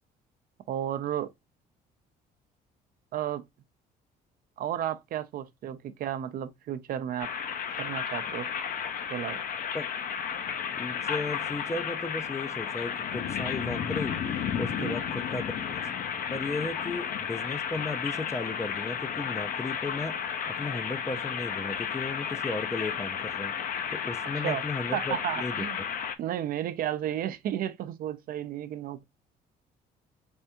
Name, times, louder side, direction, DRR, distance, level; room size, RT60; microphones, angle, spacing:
voice 1, 0.7-1.3 3.1-3.4 4.6-7.3 7.8-8.5 9.1-9.4 14.8-15.0 24.4-24.6 24.9-25.8 26.2-29.0, right 11 dB, 60° right, 0.5 m, -33 dB
sound 1, 7.2-26.1, left 7 dB, 55° left, 0.6 m, -33 dB
voice 2, 10.7-14.2 14.6-15.8 16.3-20.2 20.5-23.5 23.9-25.7, left 3 dB, 15° left, 0.4 m, -35 dB
3.5 x 3.3 x 2.8 m
cardioid pair, 110°, 17 cm